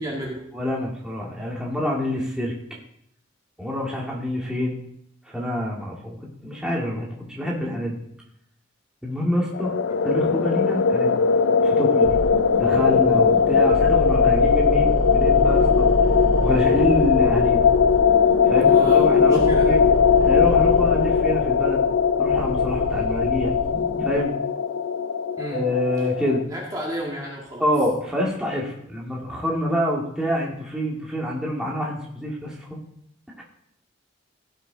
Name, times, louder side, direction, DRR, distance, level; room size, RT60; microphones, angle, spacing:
voice 1, 0.0-0.5 18.6-19.8 25.4-25.7 26.5-27.7, equal, 20° right, -2 dB, 2.0 m, -32 dB
voice 2, 0.5-2.5 3.6-4.8 5.2-8.1 9.0-9.8 10.0-11.1 11.6-12.2 12.6-15.9 16.4-17.7 18.5-19.8 20.2-21.9 22.2-23.5 24.0-24.3 25.5-26.4 27.6-32.8 33.4-33.5, left 1 dB, 5° right, -4 dB, 2.2 m, -26 dB
sound 1, 9.5-26.4, left 6 dB, 80° left, 0.4 m, -19 dB
sound 2, 12.0-24.2, equal, 65° right, 1.6 m, -28 dB
16.5 x 6.7 x 3.9 m, 0.72 s
head